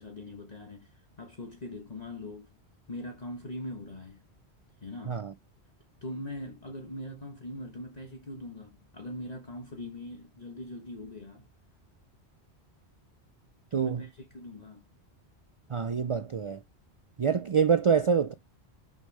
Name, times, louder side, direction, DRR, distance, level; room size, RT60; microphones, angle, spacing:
voice 1, 0.0-2.5 2.9-4.2 4.8-5.2 6.0-11.5 13.7-14.8, left 1 dB, 40° left, 1.4 m, -41 dB
voice 2, 13.7-14.0 15.7-16.6 17.2-18.3, right 6 dB, 55° right, 0.3 m, -26 dB
6.3 x 5.2 x 5.3 m
omnidirectional pair, 1.1 m